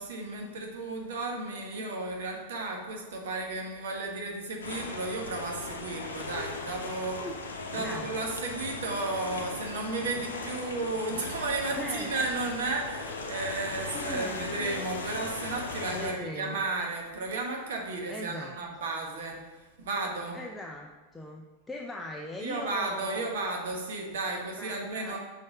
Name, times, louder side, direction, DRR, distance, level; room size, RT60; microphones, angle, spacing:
voice 1, 0.0-7.2 7.7-20.4 22.4-25.2, right 3 dB, 60° right, 1 dB, 1.1 m, -33 dB
sound 1, 4.6-16.1, left 3 dB, 70° left, 0.7 m, -38 dB
voice 2, 7.8-8.1 11.8-12.1 13.9-14.5 15.9-16.6 18.1-18.6 20.3-23.3 24.6-25.2, left 1 dB, 10° left, 1 dB, 0.4 m, -40 dB
6.3 x 3.6 x 4.9 m, 1.2 s
figure-of-eight pair, 90°, 0 cm